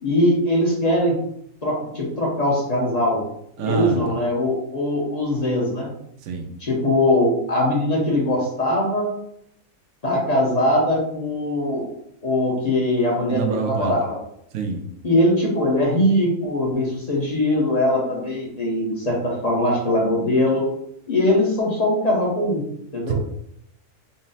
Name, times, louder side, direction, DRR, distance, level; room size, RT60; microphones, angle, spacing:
voice 1, 0.0-1.1 1.6-3.2 3.6-5.9 6.6-9.1 10.0-11.8 12.2-14.2 15.0-20.6 21.1-22.6 22.9-23.1, left 1 dB, 35° left, -3 dB, 0.7 m, -21 dB
voice 2, 3.6-4.2 6.2-6.5 13.3-14.0 14.5-14.8 23.1-23.2, right 5 dB, 70° right, 3 dB, 0.9 m, -26 dB
3.9 x 2.1 x 3.9 m, 0.72 s
omnidirectional pair, 1.6 m